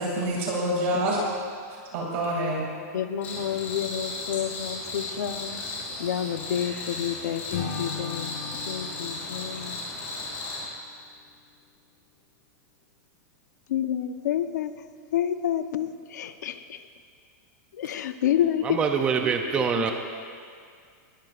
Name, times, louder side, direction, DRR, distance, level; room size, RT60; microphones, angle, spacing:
voice 1, 0.0-1.3 1.7-2.6, right 1 dB, 45° right, -2 dB, 2.7 m, -27 dB
voice 2, 0.9-1.3 2.9-8.4 8.7-9.9 13.7-14.9 15.1-16.9 17.7-18.8 19.8-19.9, left 10 dB, 85° left, 9 dB, 0.9 m, -29 dB
Cricket, 3.2-10.6, left 2 dB, 25° left, 4.9 m, -35 dB
Acoustic guitar / Strum, 7.5-10.8, left 6 dB, 60° left, 2.3 m, -38 dB
voice 3, 18.6-19.9, right 6 dB, 10° right, 4 dB, 0.5 m, -24 dB
20.5 x 20.0 x 2.5 m, 2.1 s
supercardioid pair, 175°, 9 cm